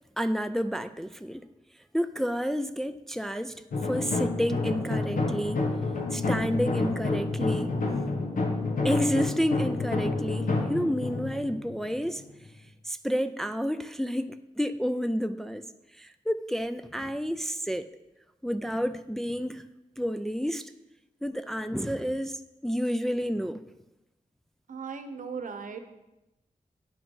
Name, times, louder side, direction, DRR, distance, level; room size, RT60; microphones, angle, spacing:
voice 1, 0.2-1.5 1.9-5.6 6.1-7.8 8.8-12.2 12.8-15.7 15.9-17.9 18.4-19.7 20.0-20.7 21.2-23.6, equal, 5° left, 0.4 m, -30 dB
sound 1, 3.7-12.5, left 3 dB, 90° left, 1.3 m, -29 dB
voice 2, 24.7-25.8, right 5 dB, 80° right, 0.9 m, -37 dB
10.5 x 6.0 x 5.4 m
wide cardioid pair, 120°, 14 cm